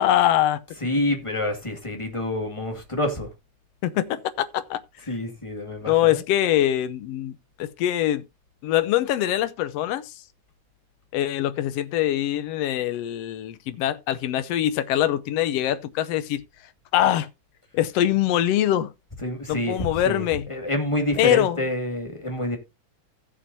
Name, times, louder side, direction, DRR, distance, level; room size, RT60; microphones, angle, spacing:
voice 1, 0.0-0.6 3.8-4.8 5.9-8.2 8.6-10.1 11.1-16.4 16.9-17.3 17.7-18.9 19.5-20.5 21.2-21.6, left 12 dB, 70° left, 1.6 m, -23 dB
voice 2, 0.8-3.3 5.1-6.2 19.2-22.6, left 1 dB, 10° left, 1.5 m, -27 dB
16.5 x 6.9 x 2.8 m
omnidirectional pair, 3.6 m